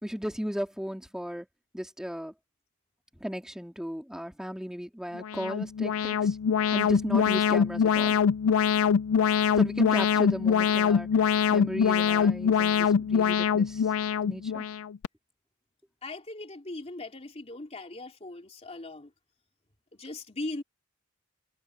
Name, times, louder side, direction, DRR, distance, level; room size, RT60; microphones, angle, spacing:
voice 1, 0.0-1.5 1.7-2.3 3.2-6.4 6.7-8.2 9.5-13.9 14.2-14.6, equal, 5° right, 2.4 m, -36 dB
Alarm, 5.1-15.1, left 7 dB, 80° left, 0.4 m, -24 dB
voice 2, 16.0-19.1 19.9-20.6, left 2 dB, 30° left, 2.7 m, -39 dB
head